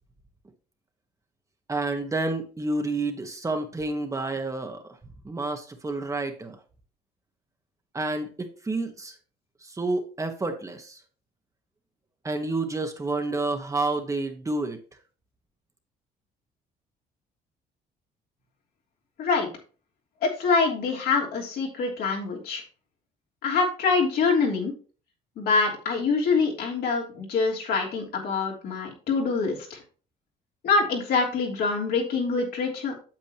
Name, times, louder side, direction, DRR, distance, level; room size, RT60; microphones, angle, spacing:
voice 1, 1.7-4.8 5.2-6.6 7.9-9.1 9.6-11.0 12.2-14.8, right 2 dB, 20° right, 4 dB, 1.4 m, -29 dB
voice 2, 20.2-22.6 23.4-24.7 25.4-29.8 30.6-32.9, left 4 dB, 70° left, -1 dB, 3.2 m, -25 dB
8.8 x 7.5 x 3.0 m, 0.37 s
cardioid pair, 110°, 17 cm